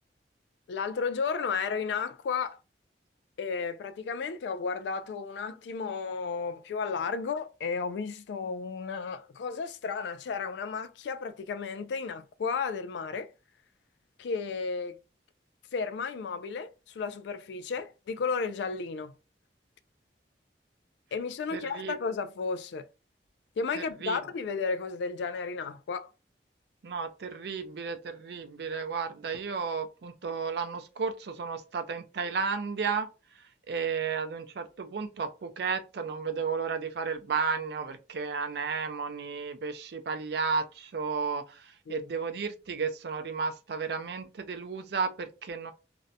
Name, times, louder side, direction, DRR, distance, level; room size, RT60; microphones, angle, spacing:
voice 1, 0.7-2.6 3.4-13.3 14.2-15.0 15.7-19.1 21.1-22.9 23.6-26.1 41.9-42.1, left 5 dB, 75° left, 0.3 m, -33 dB
voice 2, 21.5-22.0 23.7-24.2 26.8-33.1 33.3-45.7, right 5 dB, 60° right, 0.4 m, -33 dB
2.5 x 2.1 x 2.6 m
head